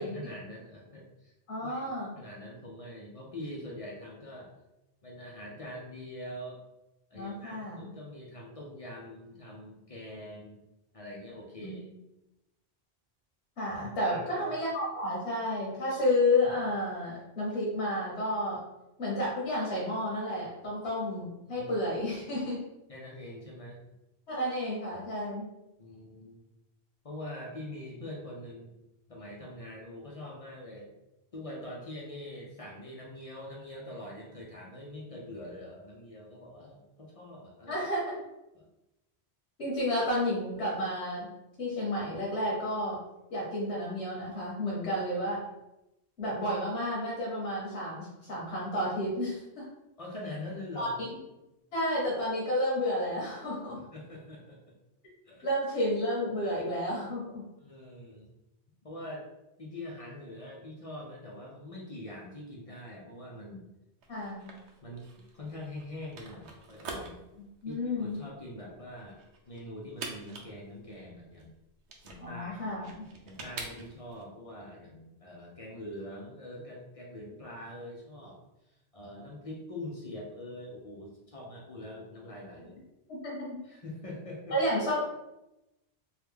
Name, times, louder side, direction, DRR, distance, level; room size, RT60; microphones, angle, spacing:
voice 1, 0.0-1.3 1.6-4.5 5.0-6.6 7.1-10.6 10.9-11.8 14.0-14.5 21.5-21.7 22.9-23.8 25.8-26.4 27.0-28.7 29.1-30.9 31.3-37.8 38.5-38.7 50.0-50.9 53.9-54.7 55.3-55.5 56.4-56.6 57.6-58.3 58.8-59.3 59.6-63.6 64.8-67.2 67.6-69.2 69.5-71.5 72.0-72.9 73.2-78.4 78.9-82.8 83.6-84.6, left 1 dB, 40° left, -3 dB, 0.5 m, -44 dB
voice 2, 1.5-2.1 7.1-7.9 11.6-11.7 13.6-18.6 19.0-22.6 24.3-25.5 37.7-38.2 39.6-41.3 41.6-43.0 43.3-45.4 46.2-49.6 50.7-51.1 51.7-53.8 55.4-57.4 64.1-64.5 67.6-68.2 72.2-73.0 83.2-83.6 84.5-85.0, left 1 dB, 75° left, -6 dB, 1.3 m, -31 dB
sound 1, 64.0-74.2, right 3 dB, 90° right, 0.9 m, -46 dB
3.1 x 2.2 x 3.5 m, 0.92 s
omnidirectional pair, 1.1 m